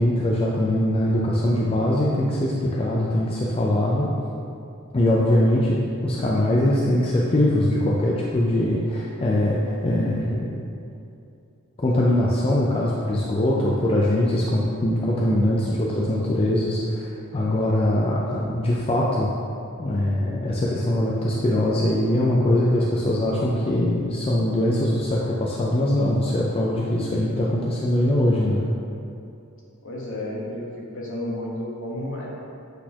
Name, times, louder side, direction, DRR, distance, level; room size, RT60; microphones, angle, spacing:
voice 1, 0.0-4.1 4.9-5.8 6.0-10.6 11.8-19.3 19.8-28.7, left 1 dB, 25° left, -4 dB, 0.4 m, -22 dB
voice 2, 29.8-30.7 30.9-32.3, left 1 dB, 60° left, -5 dB, 1.3 m, -31 dB
7.9 x 4.1 x 2.9 m, 2.6 s
head